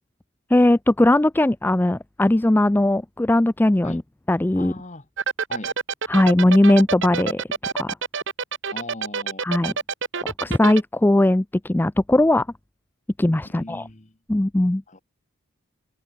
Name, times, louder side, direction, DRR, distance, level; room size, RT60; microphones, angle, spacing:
voice 1, 0.5-4.0 4.3-4.7 6.1-7.4 7.7-8.0 9.4-9.7 10.2-12.5 13.2-13.9 14.3-14.8, left 1 dB, 10° left, 0.3 m, -19 dB
voice 2, 4.5-5.1 5.5-5.7 8.7-9.4 13.4-14.2 14.9-15.0, left 2 dB, 35° left, 1.6 m, -39 dB
sound 1, 5.2-10.8, right 5 dB, 55° right, 1.5 m, -26 dB
open air
head